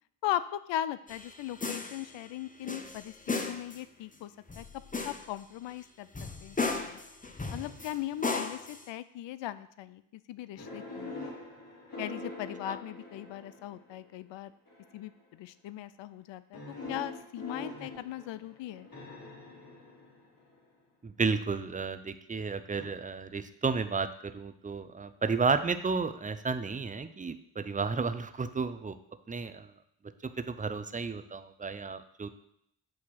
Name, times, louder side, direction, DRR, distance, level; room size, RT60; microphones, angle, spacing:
voice 1, 0.2-4.3 4.6-4.7 5.0-6.1 6.4-7.0 7.5-11.2 12.0-14.5 14.9-16.6 16.9-18.9, left 13 dB, 60° left, 15 dB, 0.6 m, -38 dB
sound 1, 1.1-2.2 2.6-3.8 4.5-5.3 5.7-5.8 6.1-8.0 8.2-8.9, left 3 dB, 15° left, 0.8 m, -36 dB
sound 2, 10.6-13.9 14.7-15.1 16.5-20.6 22.7-22.9, left 2 dB, 45° left, 2.6 m, -44 dB
voice 2, 21.0-29.0 29.3-29.7 30.2-32.3, right 4 dB, 15° right, 11 dB, 0.5 m, -32 dB
8.4 x 2.9 x 6.2 m, 0.75 s
supercardioid pair, 55°, 49 cm